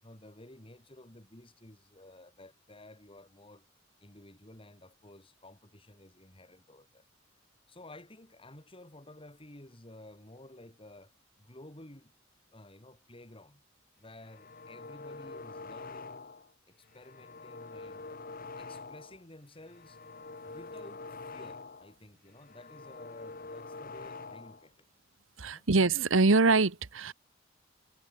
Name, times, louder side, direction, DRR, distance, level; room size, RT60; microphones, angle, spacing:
voice 1, 0.0-3.7 4.0-7.1 7.7-12.1 12.5-13.6 14.0-16.3 16.7-18.2 18.6-20.0 20.5-24.9 25.4-25.7, left 1 dB, 25° left, 3.8 m, -53 dB
sound 1, 14.1-16.5 16.9-19.2 19.6-21.9 22.3-24.7, left 3 dB, 45° left, 1.8 m, -46 dB
voice 2, 25.4-27.1, right 3 dB, 80° right, 1.2 m, -24 dB
head